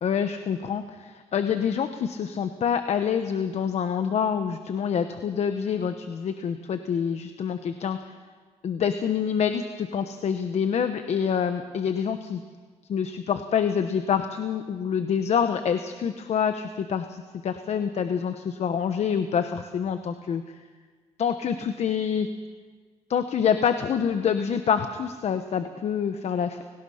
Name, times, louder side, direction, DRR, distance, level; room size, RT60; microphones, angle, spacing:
voice 1, 0.0-8.0 8.6-12.4 12.9-20.6 21.2-22.3 23.1-26.6, left 7 dB, 70° left, 8 dB, 1.0 m, -26 dB
28.0 x 18.5 x 5.7 m, 1.5 s
cardioid pair, 95°, 12 cm